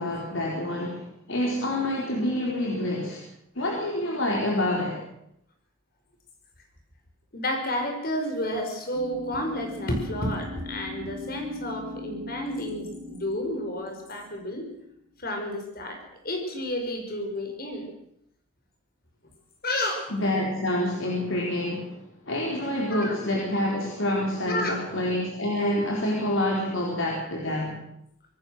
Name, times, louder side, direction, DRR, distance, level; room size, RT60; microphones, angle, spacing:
voice 1, 0.0-3.2 3.6-5.0 20.1-27.8, left 1 dB, 65° left, -1 dB, 4.1 m, -27 dB
voice 2, 7.3-14.7 15.2-17.9 19.6-20.1 22.9-23.2 24.5-24.8, left 1 dB, 45° left, 4 dB, 5.4 m, -31 dB
sound 1, 8.9-14.7, left 2 dB, 20° right, 1.5 m, -40 dB
25.5 x 19.0 x 6.5 m, 0.76 s
head